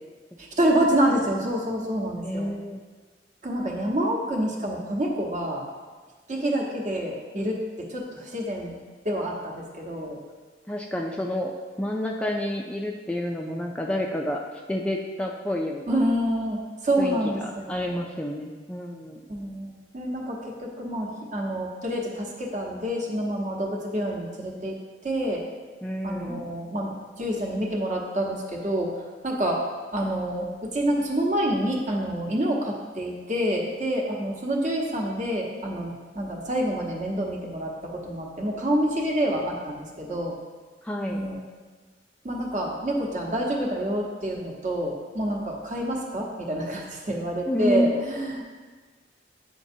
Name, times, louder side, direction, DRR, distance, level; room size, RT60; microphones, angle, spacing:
voice 1, 0.4-2.6 3.4-5.6 6.3-7.6 7.9-8.8 9.0-10.2 15.9-18.0 19.3-24.8 25.0-25.4 26.0-26.9 27.2-29.6 29.9-40.4 41.1-41.4 42.2-48.4, right 1 dB, 45° right, -1 dB, 1.0 m, -27 dB
voice 2, 2.2-2.8 10.7-11.5 11.8-14.4 14.7-16.0 17.0-17.2 17.4-19.2 25.8-26.4 40.8-41.2 47.5-48.0, left 1 dB, 5° left, 0 dB, 0.3 m, -29 dB
8.4 x 5.1 x 2.7 m, 1.4 s
head